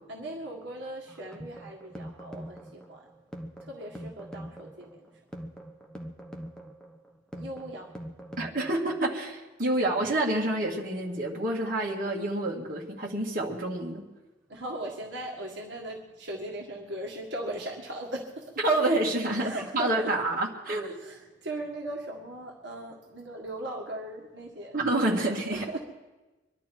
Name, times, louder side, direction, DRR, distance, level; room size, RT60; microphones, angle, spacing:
voice 1, 0.1-3.1 3.7-5.1 7.3-8.0 9.8-9.9 14.5-18.5 19.4-20.1 20.8-24.8 25.5-25.8, right 1 dB, 65° right, -1 dB, 1.8 m, -38 dB
sound 1, 1.1-9.1, equal, 5° left, 1.2 m, -43 dB
voice 2, 8.4-14.0 18.6-20.9 24.7-25.7, right 2 dB, 45° right, -2 dB, 2.1 m, -28 dB
24.5 x 11.5 x 4.6 m, 1.1 s
head